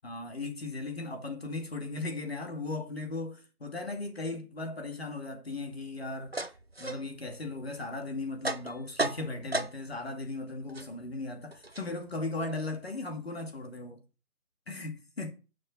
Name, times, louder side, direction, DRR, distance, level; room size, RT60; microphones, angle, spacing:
voice 1, 0.0-6.3 6.8-14.0 14.7-15.3, left 2 dB, 40° left, 2.4 m, -37 dB
sound 1, 5.5-10.1 10.4-13.3, right 2 dB, 40° right, 0.7 m, -37 dB
14.0 x 7.1 x 4.6 m
figure-of-eight pair, 165°, 46 cm